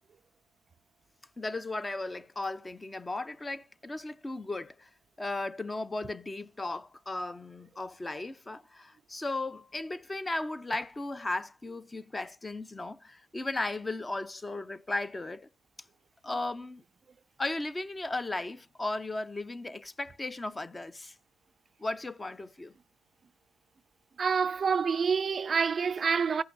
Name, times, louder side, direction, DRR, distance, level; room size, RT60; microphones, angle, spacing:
voice 1, 1.4-4.9 5.2-15.5 16.2-16.8 17.4-21.1 21.8-22.7, left 2 dB, 20° left, 0.6 m, -36 dB
voice 2, 24.2-26.4, right 6 dB, 45° right, 0.3 m, -27 dB
14.5 x 5.7 x 2.6 m
supercardioid pair, 70°, 0 cm